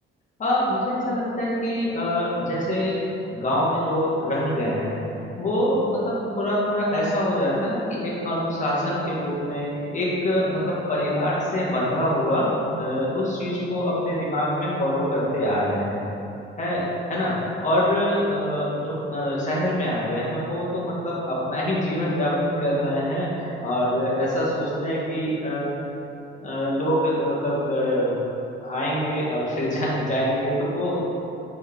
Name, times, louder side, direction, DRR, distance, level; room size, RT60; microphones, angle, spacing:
voice 1, 0.4-3.0 3.3-5.0 5.2-16.0 16.6-16.8 17.1-25.7 26.4-28.2 28.6-31.0, left 1 dB, 40° left, -6 dB, 1.3 m, -25 dB
4.3 x 3.6 x 3.3 m, 2.8 s
cardioid pair, 90°, 20 cm